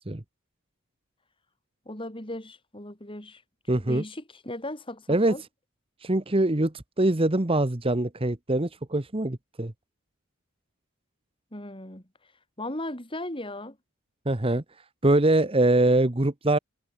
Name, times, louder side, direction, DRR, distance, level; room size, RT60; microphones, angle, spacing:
voice 1, 1.9-3.4 3.8-5.4 11.5-12.0 12.6-13.8, left 1 dB, 25° left, 4.4 m, -37 dB
voice 2, 3.7-4.0 5.1-5.3 6.0-9.7 14.3-14.6 15.0-16.6, right 2 dB, 25° right, 1.1 m, -23 dB
head